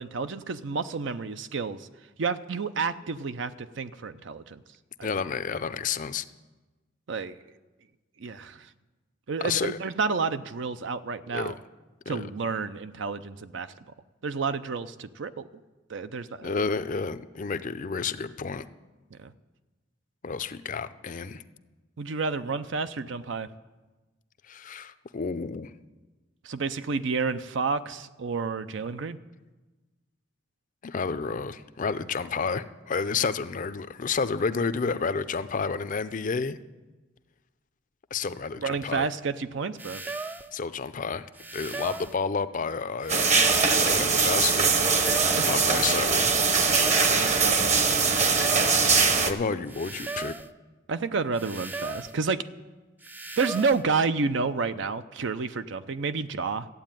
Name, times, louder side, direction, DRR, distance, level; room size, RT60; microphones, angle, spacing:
voice 1, 0.0-1.9 2.2-4.6 5.0-5.1 7.1-7.4 8.2-8.7 9.3-11.6 12.1-13.7 14.2-15.5 15.9-16.6 19.1-19.3 22.0-23.5 26.4-29.2 38.6-40.0 45.1-45.4 47.1-48.7 50.9-52.4 53.4-56.7, right 4 dB, 65° right, 12 dB, 0.6 m, -30 dB
voice 2, 5.0-6.2 9.4-9.8 11.3-11.5 12.1-12.2 16.4-18.6 20.2-21.4 24.5-25.7 30.8-36.6 38.1-39.1 40.5-41.3 41.5-43.4 43.7-44.7 45.4-46.3 49.2-50.3, left 5 dB, 40° left, 12 dB, 0.5 m, -30 dB
sound 1, 39.8-40.5 41.4-42.2 43.0-43.9 44.7-45.5 46.4-47.2 48.0-48.8 49.7-50.5 51.4-52.2 53.0-53.8, right 3 dB, 10° right, 0.4 m, -37 dB
sound 2, 43.1-49.3, right 5 dB, 35° right, 1.0 m, -22 dB
14.0 x 8.4 x 9.0 m, 1.2 s
head